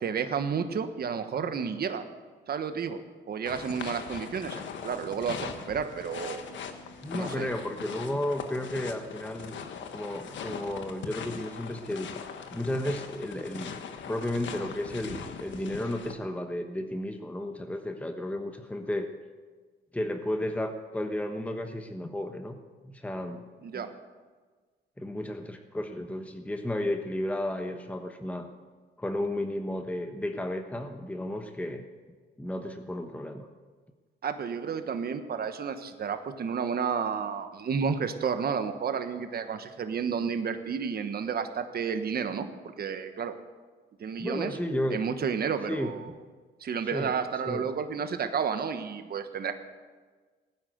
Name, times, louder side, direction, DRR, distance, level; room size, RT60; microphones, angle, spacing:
voice 1, 0.0-2.0 2.5-3.0 3.3-6.4 7.1-7.5 23.6-23.9 34.2-43.4 44.0-44.6 44.9-46.1 46.6-49.5, right 6 dB, 50° right, 8 dB, 1.3 m, -31 dB
sound 1, 3.5-16.1, left 6 dB, 70° left, 1.4 m, -40 dB
voice 2, 7.0-9.6 9.9-12.1 12.5-13.8 14.1-19.1 19.9-22.6 22.8-23.4 23.7-23.9 25.0-28.5 29.0-31.8 32.4-33.5 44.2-45.0 45.7-45.9 46.8-47.1 47.4-47.6, left 1 dB, 5° left, 5 dB, 1.2 m, -33 dB
17.0 x 10.0 x 7.9 m, 1.4 s
cardioid pair, 90°, 20 cm